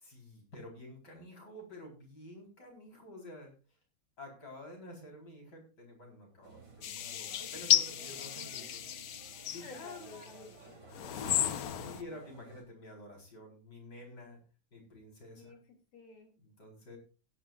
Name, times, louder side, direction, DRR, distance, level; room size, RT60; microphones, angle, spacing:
voice 1, 0.0-3.5 4.2-8.9 9.5-10.1 11.1-14.4 14.7-15.6 16.4-17.0, left 1 dB, 50° left, 1 dB, 4.9 m, -50 dB
sound 1, 6.4-12.6, right 3 dB, 50° right, 3.9 m, -55 dB
sound 2, 6.8-10.3 10.9-12.0, left 10 dB, 65° left, 0.9 m, -33 dB
voice 2, 9.6-11.0 15.4-15.6 15.9-16.3, left 4 dB, 80° left, 4 dB, 3.8 m, -52 dB
17.0 x 10.5 x 2.5 m, 0.33 s
omnidirectional pair, 2.4 m